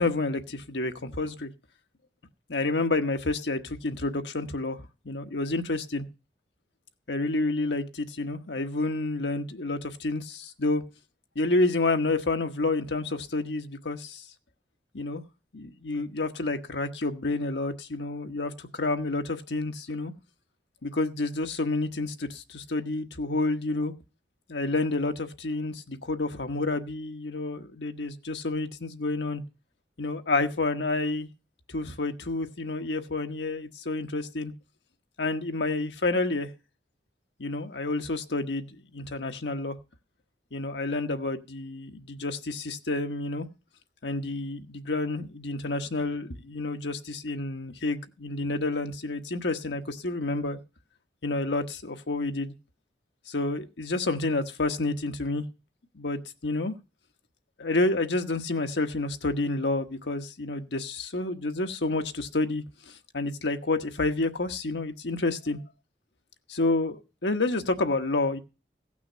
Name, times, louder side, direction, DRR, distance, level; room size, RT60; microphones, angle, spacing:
voice 1, 0.0-1.5 2.5-6.0 7.1-10.8 11.3-14.2 14.9-15.2 15.5-20.1 20.8-23.9 24.5-29.4 30.0-31.3 31.7-34.5 35.2-36.5 37.4-39.8 40.5-43.5 44.0-50.6 51.2-52.5 53.3-55.4 55.9-56.7 57.6-65.6 66.5-68.4, left 2 dB, 85° left, 7 dB, 1.2 m, -29 dB
16.5 x 6.1 x 6.3 m, 0.31 s
head